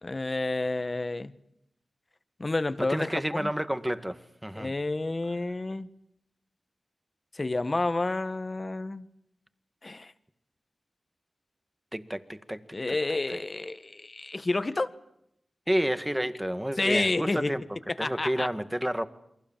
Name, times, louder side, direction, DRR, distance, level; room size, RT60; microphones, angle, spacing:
voice 1, 0.0-1.3 2.4-3.5 4.6-5.9 7.3-9.1 9.8-10.1 12.7-14.9 16.8-17.5 18.0-18.5, left 2 dB, 40° left, 1.6 m, -30 dB
voice 2, 2.8-4.7 11.9-13.0 13.3-13.4 15.7-17.6 18.0-19.1, equal, 10° right, 2.0 m, -30 dB
29.0 x 23.5 x 7.6 m
cardioid pair, 55°, 0 cm